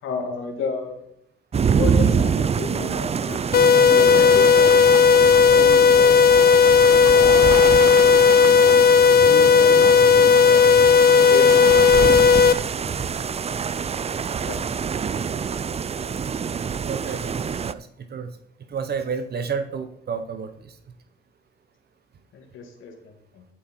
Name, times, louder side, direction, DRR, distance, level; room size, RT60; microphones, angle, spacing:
voice 1, 0.0-1.0 1.5-4.8 5.2-6.5 7.1-7.6 9.1-10.7 11.0-13.0 14.5-14.8 22.3-23.5, left 5 dB, 85° left, 4 dB, 2.6 m, -33 dB
sound 1, 1.5-17.7, right 6 dB, 30° right, 0.5 m, -26 dB
sound 2, 3.5-12.5, left 6 dB, 50° left, 0.7 m, -14 dB
voice 2, 16.8-18.4 18.7-20.8, right 6 dB, 55° right, 9 dB, 1.2 m, -31 dB
12.0 x 7.4 x 4.6 m, 0.70 s
cardioid pair, 90°, 20 cm